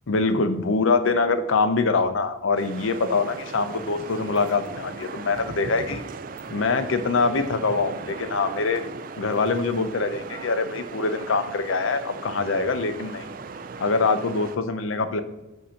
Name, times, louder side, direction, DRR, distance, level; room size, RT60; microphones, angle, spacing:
voice 1, 0.1-6.0 6.5-8.8 9.2-13.3 13.8-15.2, left 4 dB, 85° left, 10 dB, 0.6 m, -24 dB
sound 1, 2.6-14.6, right 4 dB, 45° right, 0.3 m, -38 dB
7.5 x 2.8 x 5.6 m, 1.0 s
head